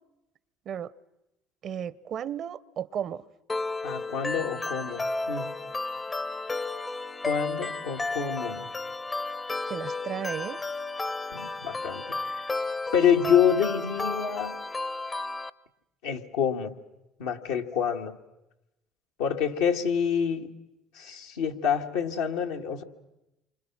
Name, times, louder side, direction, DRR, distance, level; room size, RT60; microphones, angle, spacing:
voice 1, 1.6-3.2 9.7-10.6, right 9 dB, 55° right, 0.8 m, -34 dB
sound 1, 3.5-15.5, left 3 dB, 25° left, 0.8 m, -33 dB
voice 2, 3.8-5.5 7.2-8.7 11.3-12.4 12.9-14.6 16.0-16.8 17.2-18.2 19.2-20.5 20.9-22.8, left 8 dB, 80° left, 1.8 m, -27 dB
28.5 x 25.0 x 6.1 m
hypercardioid pair, 65°, 0 cm